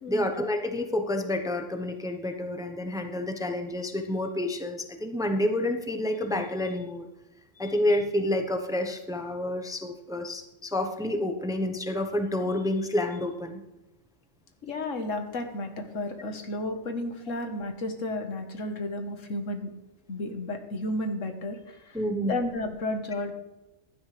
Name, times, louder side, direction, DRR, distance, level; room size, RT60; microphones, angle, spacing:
voice 1, 0.1-7.0 7.6-13.6 21.9-22.4, left 1 dB, 5° right, 5 dB, 0.9 m, -29 dB
voice 2, 14.6-19.7 20.1-22.0 22.3-23.3, left 2 dB, 80° left, 6 dB, 1.7 m, -32 dB
16.0 x 11.5 x 3.4 m, 0.98 s
omnidirectional pair, 1.3 m